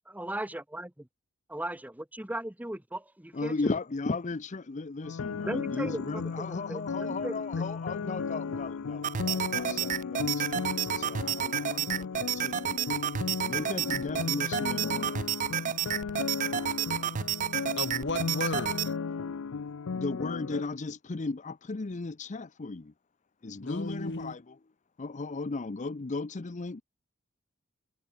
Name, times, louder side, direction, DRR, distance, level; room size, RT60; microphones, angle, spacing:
voice 1, 0.1-1.1 1.5-3.5 5.4-6.0 6.4-7.6, right 1 dB, 10° right, 1.1 m, -37 dB
voice 2, 3.3-13.0 13.4-15.3 19.9-22.9 23.4-24.6 25.0-26.8, left 3 dB, 35° left, 0.6 m, -36 dB
sound 1, 5.0-20.6, left 5 dB, 85° left, 0.5 m, -35 dB
sound 2, 9.0-18.9, right 9 dB, 40° right, 0.4 m, -31 dB
voice 3, 17.8-18.9 23.4-24.4, left 2 dB, 60° left, 2.1 m, -35 dB
head